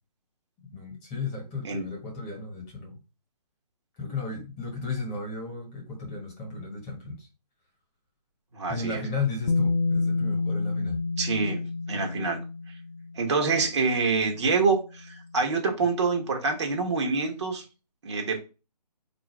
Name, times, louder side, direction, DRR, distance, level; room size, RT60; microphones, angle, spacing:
voice 1, 0.7-3.0 4.0-7.3 8.7-11.0, left 4 dB, 20° left, 1.3 m, -34 dB
voice 2, 8.5-9.0 11.2-11.6 11.9-12.4 13.1-17.6 18.0-18.4, right 4 dB, 45° right, 1.1 m, -26 dB
Bass guitar, 9.5-13.4 14.5-14.6, left 3 dB, 60° left, 0.5 m, -28 dB
4.3 x 2.6 x 3.3 m
figure-of-eight pair, 145°, 21 cm